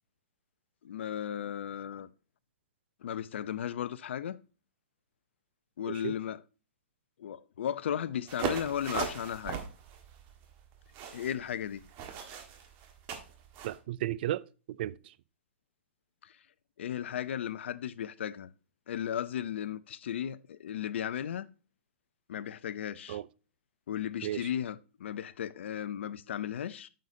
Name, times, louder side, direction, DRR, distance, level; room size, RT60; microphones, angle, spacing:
voice 1, 0.8-2.1 3.0-4.4 5.8-6.4 7.2-9.6 11.1-11.8 16.2-16.3 16.8-18.5 18.9-21.5 22.3-23.2 23.9-26.9, left 9 dB, 70° left, 0.5 m, -35 dB
sound 1, 8.3-13.8, right 7 dB, 35° right, 1.5 m, -39 dB
voice 2, 13.6-15.1 23.1-23.3 24.2-24.5, right 13 dB, 55° right, 0.4 m, -35 dB
9.2 x 6.5 x 2.7 m
hypercardioid pair, 135°, 7 cm